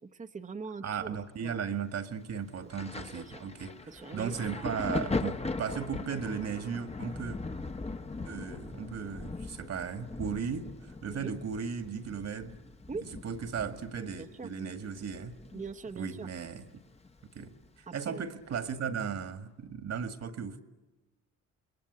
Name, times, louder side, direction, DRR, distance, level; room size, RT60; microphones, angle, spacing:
voice 1, 0.0-1.6 3.1-3.4 3.9-4.7 11.2-11.3 12.9-13.0 14.2-14.5 15.5-16.3 17.9-18.2, right 4 dB, 25° right, 1.1 m, -42 dB
voice 2, 0.8-3.8 4.1-7.4 8.2-12.6 13.2-15.3 16.0-16.7 17.4-20.6, right 6 dB, 55° right, 2.1 m, -36 dB
Thunder, 2.7-16.1 16.3-17.7 18.5-18.7, left 3 dB, 20° left, 1.1 m, -40 dB
27.5 x 21.5 x 9.8 m
cardioid pair, 90°, 30 cm